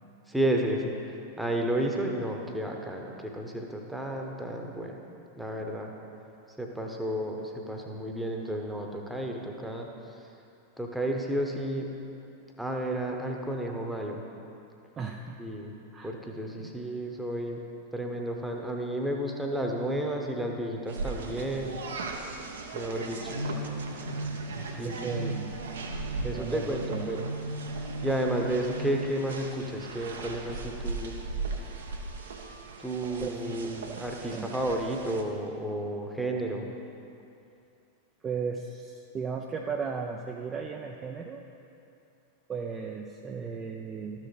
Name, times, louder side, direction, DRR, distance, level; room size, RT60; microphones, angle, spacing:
voice 1, 0.3-1.0 1.4-5.0 5.4-5.9 6.6-9.9 10.8-11.9 12.6-14.2 15.4-15.7 16.0-17.6 17.9-21.8 22.7-23.4 24.8-25.3 26.2-27.5 28.0-31.1 32.8-36.7, right 1 dB, 5° right, 1 dB, 1.0 m, -32 dB
voice 2, 15.0-15.4 15.9-16.2 16.6-16.7 24.8-25.5 26.1-27.1 33.2-34.5 38.2-41.4 42.5-44.3, right 5 dB, 25° right, 2 dB, 0.4 m, -36 dB
sound 1, 20.9-35.2, right 3 dB, 65° right, 0.8 m, -36 dB
13.0 x 6.6 x 3.3 m, 2.7 s
figure-of-eight pair, 90°, 0 cm